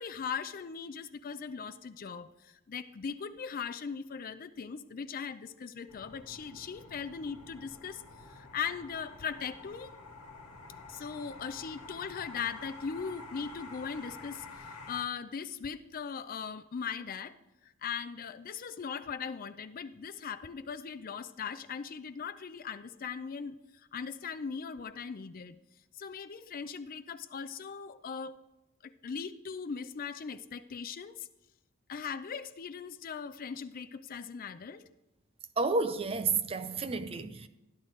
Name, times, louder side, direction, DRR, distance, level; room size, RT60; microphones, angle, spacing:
voice 1, 0.0-10.0 10.9-17.4 17.6-23.6 23.9-25.6 25.9-28.4 28.8-31.3 31.9-34.8, left 6 dB, 40° left, 0.4 m, -39 dB
sound 1, 5.9-15.0, left 3 dB, 85° left, 1.5 m, -49 dB
voice 2, 35.6-37.5, right 4 dB, 25° right, 0.5 m, -31 dB
13.0 x 10.5 x 3.2 m
head